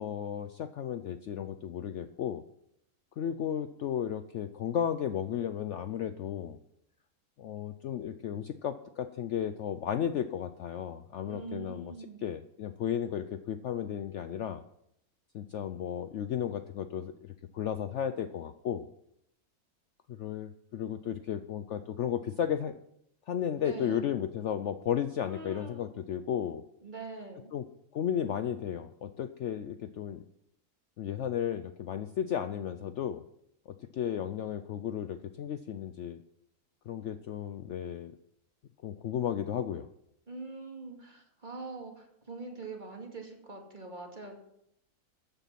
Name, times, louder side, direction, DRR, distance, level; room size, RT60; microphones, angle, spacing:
voice 1, 0.0-2.4 3.2-6.6 7.4-11.9 12.2-14.6 15.3-18.9 20.1-22.8 23.3-26.6 27.5-27.6 27.9-30.2 31.0-33.2 33.7-36.2 36.9-38.1 38.8-39.9, left 9 dB, 65° left, 10 dB, 0.8 m, -34 dB
voice 2, 11.2-12.2 23.6-24.1 25.2-25.9 26.8-27.5 40.3-44.4, right 3 dB, 30° right, 1 dB, 2.4 m, -43 dB
14.0 x 9.2 x 5.9 m, 0.77 s
omnidirectional pair, 1.6 m